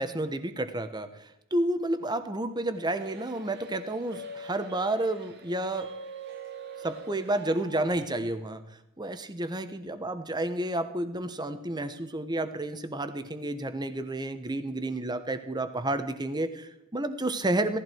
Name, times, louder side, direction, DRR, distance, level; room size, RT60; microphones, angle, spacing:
voice 1, 0.0-5.9 6.8-8.6 9.0-17.8, right 1 dB, 20° right, 10 dB, 1.2 m, -31 dB
sound 1, 2.7-8.0, right 2 dB, 55° right, 1.7 m, -43 dB
17.5 x 14.5 x 4.6 m, 0.86 s
head